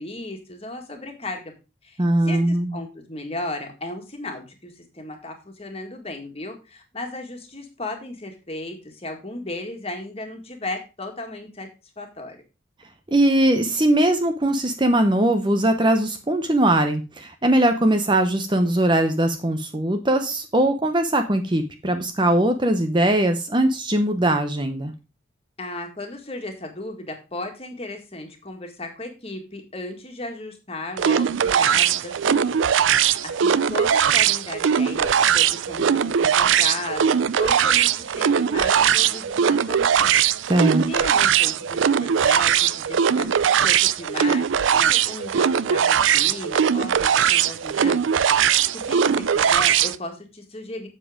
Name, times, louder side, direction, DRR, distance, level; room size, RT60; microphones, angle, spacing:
voice 1, 0.0-1.5 1.8-11.7 12.0-12.4 25.6-32.6 32.9-40.1 40.4-40.5 40.9-43.3 43.6-50.9, left 2 dB, 30° left, 4 dB, 1.9 m, -35 dB
voice 2, 2.0-2.8 13.1-24.9 40.5-40.8, right 1 dB, 25° right, 7 dB, 0.8 m, -20 dB
sound 1, 31.0-50.0, right 8 dB, 75° right, 0.4 m, -20 dB
7.5 x 7.3 x 5.0 m, 0.31 s
head